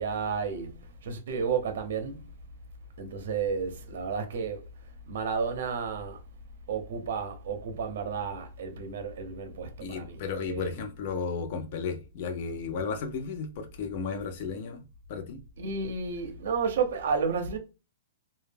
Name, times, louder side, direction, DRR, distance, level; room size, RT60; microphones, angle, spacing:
voice 1, 0.0-2.3 3.0-4.6 5.1-6.2 6.7-10.7 15.6-17.6, right 5 dB, 65° right, 0.6 m, -32 dB
voice 2, 9.8-15.4, left 5 dB, 45° left, 0.6 m, -34 dB
2.2 x 2.1 x 3.3 m
hypercardioid pair, 160°, 0 cm